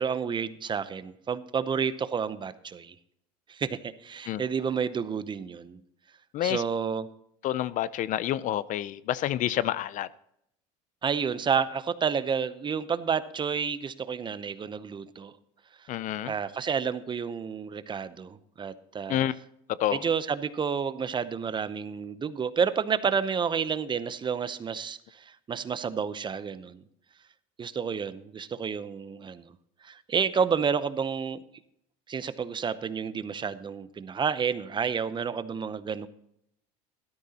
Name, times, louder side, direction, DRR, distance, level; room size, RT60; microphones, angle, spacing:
voice 1, 0.0-2.9 3.5-5.8 6.4-7.1 11.0-15.3 16.2-19.2 19.9-26.8 27.6-29.5 29.8-31.4 32.1-36.1, right 6 dB, 25° right, 0.7 m, -30 dB
voice 2, 7.4-10.1 15.9-16.3 19.1-19.3 19.8-20.0, left 12 dB, 50° left, 0.5 m, -28 dB
13.0 x 13.0 x 2.9 m
supercardioid pair, 100°, 17 cm